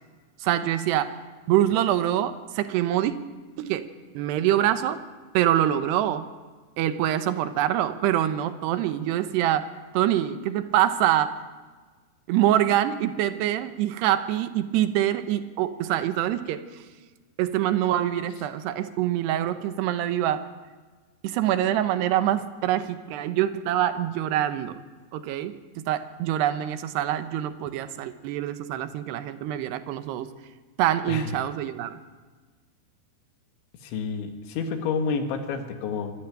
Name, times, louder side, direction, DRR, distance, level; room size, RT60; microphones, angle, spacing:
voice 1, 0.4-1.2 1.5-3.1 3.6-3.9 4.1-5.0 5.3-6.3 6.8-11.4 12.3-16.6 17.4-20.5 21.2-24.8 25.1-30.3 30.8-32.0, right 12 dB, 75° right, 11 dB, 2.9 m, -25 dB
voice 2, 33.8-36.1, left 5 dB, 85° left, 6 dB, 4.0 m, -29 dB
25.0 x 13.0 x 9.2 m, 1.4 s
omnidirectional pair, 5.2 m